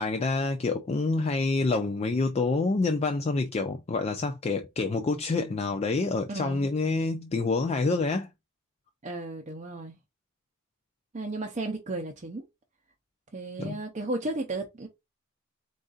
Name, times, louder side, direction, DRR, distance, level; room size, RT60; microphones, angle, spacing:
voice 1, 0.0-8.3 13.6-13.8, left 3 dB, 30° left, 0.4 m, -27 dB
voice 2, 6.3-6.7 9.0-10.0 11.1-12.5 13.3-14.9, right 2 dB, 35° right, 0.6 m, -34 dB
3.9 x 3.7 x 2.4 m
head